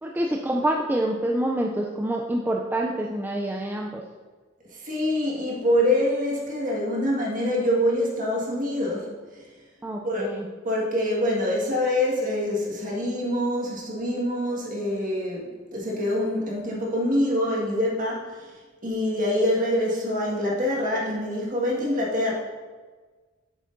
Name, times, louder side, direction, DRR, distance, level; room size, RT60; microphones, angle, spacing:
voice 1, 0.0-4.0 9.8-10.5, right 1 dB, 10° right, 0 dB, 0.3 m, -27 dB
voice 2, 4.7-9.4 10.0-10.3 10.6-22.3, left 1 dB, 40° right, -3 dB, 1.6 m, -25 dB
7.7 x 6.4 x 2.6 m, 1.4 s
head